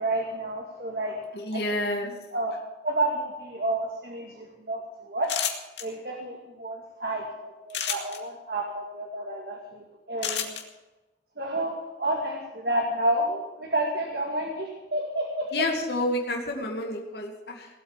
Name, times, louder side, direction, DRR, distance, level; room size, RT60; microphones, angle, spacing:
voice 1, 0.0-1.8 2.0-2.5 2.8-5.3 5.8-10.6 11.4-15.5, right 1 dB, 55° right, 0 dB, 2.3 m, -30 dB
voice 2, 1.4-2.1 15.5-17.7, left 1 dB, 65° left, 1 dB, 2.4 m, -29 dB
sound 1, 5.2-5.8 7.7-8.2 10.2-10.6, left 9 dB, 80° left, 2.2 m, -29 dB
18.5 x 8.5 x 7.4 m, 1.1 s
head